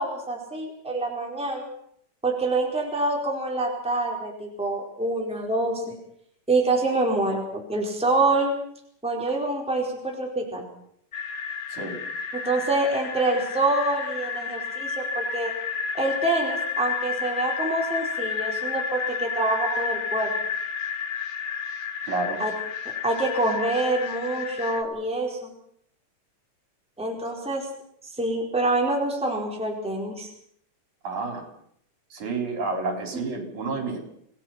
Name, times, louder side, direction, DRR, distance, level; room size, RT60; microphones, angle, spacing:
voice 1, 0.0-1.6 2.2-5.8 6.5-8.5 9.0-10.6 12.3-15.5 15.9-20.3 22.4-22.5 23.0-25.5 27.0-27.7 28.0-30.3, right 2 dB, ahead, -1 dB, 4.3 m, -26 dB
sound 1, 11.1-24.8, left 6 dB, 50° left, 1.4 m, -31 dB
voice 2, 22.1-22.4 31.0-31.5 32.1-34.0, right 3 dB, 70° right, 3 dB, 5.8 m, -29 dB
27.5 x 18.0 x 5.9 m, 0.69 s
omnidirectional pair, 3.5 m